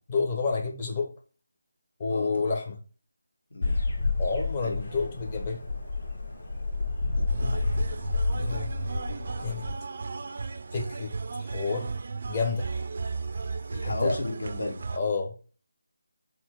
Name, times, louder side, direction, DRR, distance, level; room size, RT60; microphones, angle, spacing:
voice 1, 0.1-1.1 2.0-2.8 4.2-5.6 8.4-8.7 9.4-9.7 10.7-11.9 12.3-12.7 13.8-14.2 14.9-15.4, left 4 dB, 30° left, 2 dB, 0.7 m, -29 dB
voice 2, 2.1-2.4 3.5-3.8 4.6-4.8 7.4-7.8 13.7-14.8, left 2 dB, 75° left, 0 dB, 1.3 m, -33 dB
sound 1, 3.6-9.7, left 3 dB, 60° left, 1.1 m, -30 dB
sound 2, 7.3-15.0, right 4 dB, 50° right, 0.3 m, -34 dB
4.2 x 2.0 x 4.5 m, 0.38 s
figure-of-eight pair, 160°, 0 cm